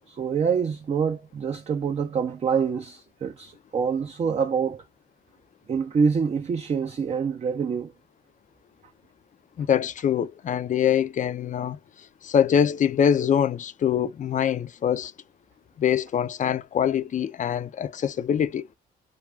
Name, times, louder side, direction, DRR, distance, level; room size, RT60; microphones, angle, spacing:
voice 1, 0.1-4.9 5.7-7.9, right 6 dB, 35° right, 0.5 m, -26 dB
voice 2, 9.6-11.8 12.2-15.1 15.8-18.6, left 8 dB, 40° left, 0.4 m, -24 dB
2.3 x 2.3 x 3.1 m
cardioid pair, 90°, 20 cm